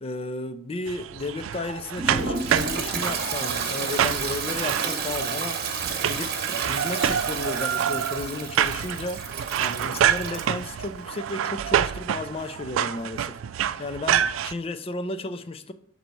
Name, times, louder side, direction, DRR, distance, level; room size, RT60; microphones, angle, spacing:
voice 1, 0.0-5.6 6.0-6.3 6.6-9.2 9.6-13.4 13.8-15.7, left 2 dB, 30° left, 11 dB, 0.5 m, -33 dB
sound 1, 0.9-14.5, right 9 dB, 80° right, 0.3 m, -27 dB
Toilet flush, 2.0-10.5, right 5 dB, 50° right, 1.0 m, -31 dB
6.6 x 4.0 x 4.6 m, 0.63 s
head